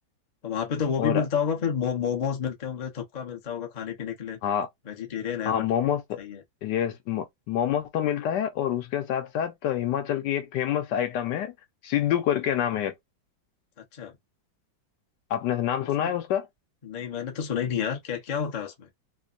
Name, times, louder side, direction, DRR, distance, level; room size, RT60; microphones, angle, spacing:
voice 1, 0.4-4.4 4.9-5.6 6.2-6.4 13.9-14.1 16.0-16.1 16.8-18.9, left 7 dB, 50° left, 0.5 m, -30 dB
voice 2, 5.5-6.2 6.6-11.5 11.8-13.0 15.3-16.5, left 10 dB, 75° left, 1.2 m, -27 dB
3.3 x 2.1 x 2.4 m
omnidirectional pair, 2.0 m